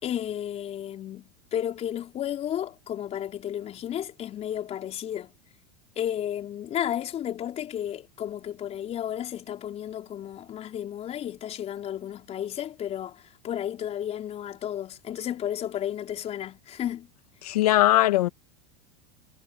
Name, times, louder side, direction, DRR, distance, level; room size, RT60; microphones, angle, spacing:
voice 1, 0.0-5.3 6.0-17.1, left 10 dB, 35° left, 4.3 m, -33 dB
voice 2, 17.4-18.3, left 15 dB, 85° left, 2.0 m, -20 dB
supercardioid pair, 120°, 19 cm